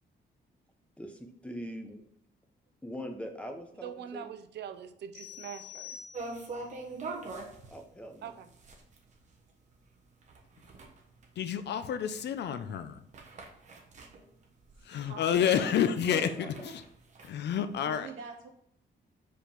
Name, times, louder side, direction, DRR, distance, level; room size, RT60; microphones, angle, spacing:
voice 1, 1.0-2.0 2.8-4.3 7.7-8.3 15.6-15.8 16.1-16.7, equal, 5° left, 4 dB, 0.7 m, -42 dB
voice 2, 3.8-6.0 8.2-8.5, right 9 dB, 65° right, 9 dB, 0.6 m, -43 dB
sound 1, 5.1-6.7, left 8 dB, 45° left, 2.9 m, -47 dB
sound 2, 6.1-15.3 15.6-15.7 16.1-17.9, right 3 dB, 40° right, 1.2 m, -44 dB
voice 3, 11.4-13.0 14.9-16.3 17.2-18.1, left 8 dB, 65° left, 11 dB, 0.6 m, -29 dB
voice 4, 14.9-15.4 15.8-16.7 17.8-18.5, right 5 dB, 85° right, 1 dB, 1.7 m, -45 dB
5.2 x 5.1 x 5.8 m, 0.69 s
wide cardioid pair, 175°, 19 cm